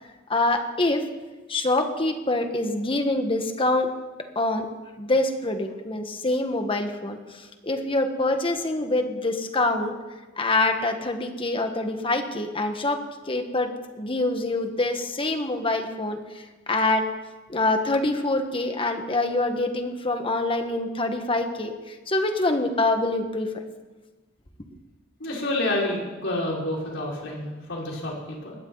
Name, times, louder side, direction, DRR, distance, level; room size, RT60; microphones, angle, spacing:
voice 1, 0.3-1.0 1.5-3.9 4.3-4.7 5.0-10.0 10.4-17.1 17.5-23.6, left 2 dB, 30° left, 6 dB, 1.6 m, -25 dB
voice 2, 25.2-28.6, left 1 dB, 70° left, -3 dB, 5.5 m, -29 dB
21.5 x 16.5 x 4.1 m, 1.2 s
head